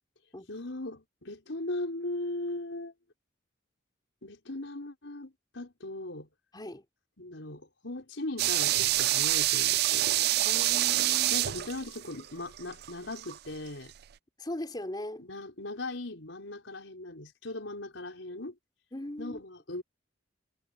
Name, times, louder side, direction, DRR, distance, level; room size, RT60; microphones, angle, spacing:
voice 1, 0.5-2.9 4.2-6.3 7.2-10.1 11.3-13.9 15.2-18.5 19.2-19.8, left 2 dB, 90° left, 4.9 m, -38 dB
voice 2, 6.5-6.8 10.5-11.4 14.4-15.3 18.9-19.4, left 1 dB, 25° left, 3.6 m, -39 dB
sound 1, 8.4-13.4 13.7-13.8, right 14 dB, 55° right, 0.4 m, -27 dB
head